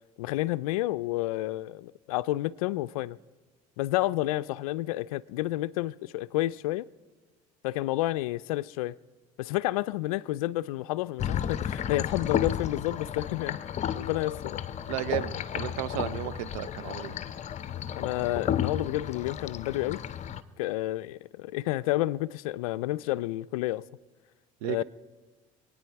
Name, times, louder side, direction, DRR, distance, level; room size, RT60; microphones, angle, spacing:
voice 1, 0.2-3.2 3.8-6.9 7.6-9.0 9.4-13.6 13.9-14.6 18.0-20.0 20.6-23.9 24.7-24.8, left 16 dB, 85° left, 0.4 m, -30 dB
tub draining, 11.2-20.4, left 9 dB, 40° left, 0.7 m, -33 dB
voice 2, 14.9-17.2 24.6-24.8, right 14 dB, 80° right, 0.6 m, -33 dB
27.0 x 9.4 x 4.7 m
hypercardioid pair, 75°, 18 cm